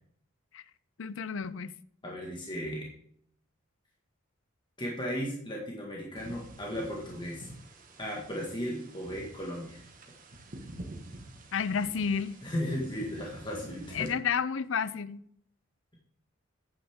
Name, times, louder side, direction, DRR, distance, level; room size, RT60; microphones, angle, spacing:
voice 1, 1.0-1.7 11.5-12.4 13.9-15.2, left 6 dB, 70° left, 0.5 m, -31 dB
voice 2, 2.0-2.9 4.8-7.5 8.0-9.8 10.1-10.2 12.4-14.1, equal, 25° left, 1.7 m, -36 dB
sound 1, 6.2-14.1, right 1 dB, 45° right, 1.5 m, -48 dB
9.0 x 9.0 x 3.6 m
head